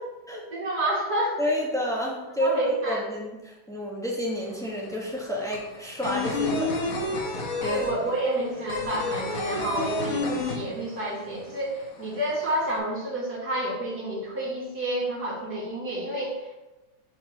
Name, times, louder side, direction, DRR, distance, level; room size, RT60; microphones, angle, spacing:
voice 1, 0.5-1.4 2.4-3.0 7.6-16.6, right 1 dB, 55° right, -5 dB, 2.0 m, -29 dB
voice 2, 1.4-7.2 7.6-8.1, equal, 5° left, -3 dB, 0.4 m, -30 dB
sound 1, 4.3-4.4 4.6-11.2 11.5-11.6 11.9-12.7, left 3 dB, 55° left, 1.2 m, -29 dB
4.6 x 4.5 x 5.8 m, 1.1 s
omnidirectional pair, 2.2 m